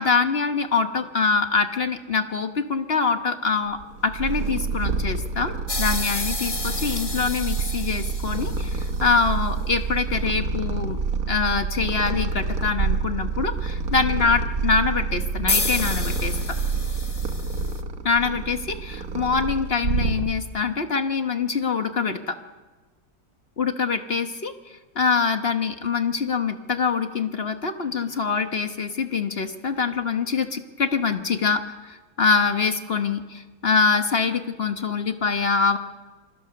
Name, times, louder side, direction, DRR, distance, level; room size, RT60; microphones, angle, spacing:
voice 1, 0.0-3.8 4.0-11.0 11.3-16.4 18.0-22.3 23.6-35.8, left 5 dB, 40° left, 7 dB, 1.1 m, -24 dB
Purr, 3.8-20.6, right 4 dB, 55° right, 1.6 m, -28 dB
sound 1, 5.7-9.1 15.5-17.8, left 2 dB, 20° left, 0.9 m, -30 dB
27.5 x 21.0 x 6.7 m, 1.3 s
omnidirectional pair, 1.9 m